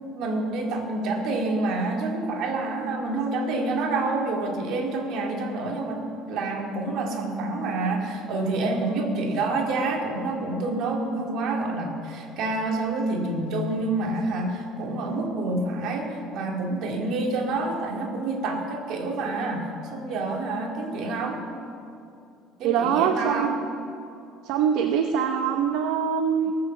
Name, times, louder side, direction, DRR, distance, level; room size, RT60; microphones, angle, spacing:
voice 1, 0.0-21.5 22.6-23.6, right 2 dB, 50° right, 1 dB, 2.2 m, -28 dB
voice 2, 22.6-23.5 24.5-26.5, right 8 dB, 65° right, 5 dB, 0.7 m, -23 dB
18.5 x 6.8 x 7.2 m, 2.6 s
cardioid pair, 175°, 0 cm